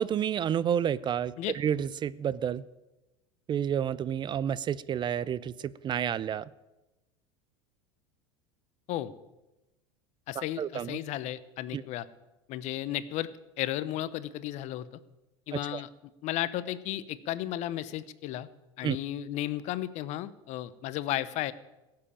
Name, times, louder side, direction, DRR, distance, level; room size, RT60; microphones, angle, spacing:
voice 1, 0.0-2.6 3.5-6.5 10.4-11.0 11.7-11.8 15.5-15.8 18.8-19.0, right 9 dB, 30° right, 19 dB, 0.5 m, -30 dB
voice 2, 10.3-12.1 12.5-13.3 13.6-14.9 15.5-15.9 16.2-18.5 18.8-21.5, left 13 dB, 50° left, 17 dB, 0.9 m, -34 dB
15.5 x 7.7 x 8.8 m, 1.0 s
hypercardioid pair, 90°, 15 cm